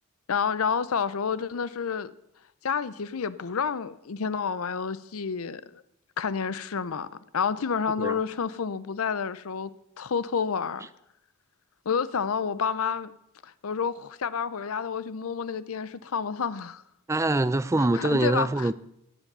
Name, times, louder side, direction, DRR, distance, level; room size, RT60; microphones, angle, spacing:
voice 1, 0.3-2.1 2.6-5.8 6.2-7.1 7.3-9.7 10.0-10.9 11.9-13.1 13.4-16.8 17.9-18.7, left 6 dB, 75° left, 0.6 m, -29 dB
voice 2, 17.1-18.7, right 2 dB, 15° right, 0.4 m, -24 dB
17.0 x 7.4 x 6.7 m
head